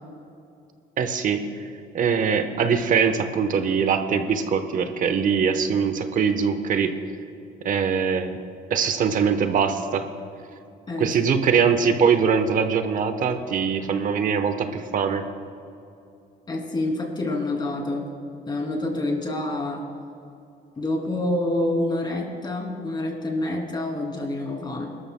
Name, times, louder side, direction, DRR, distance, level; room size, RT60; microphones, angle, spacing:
voice 1, 1.0-1.7 1.9-7.0 7.6-8.4 8.7-10.1 11.0-15.3, right 6 dB, 50° right, 8 dB, 1.0 m, -22 dB
voice 2, 16.5-18.1 18.5-19.8 20.8-24.9, left 2 dB, 25° left, 0 dB, 2.8 m, -27 dB
22.5 x 12.5 x 2.2 m, 2.6 s
cardioid pair, 110°, 17 cm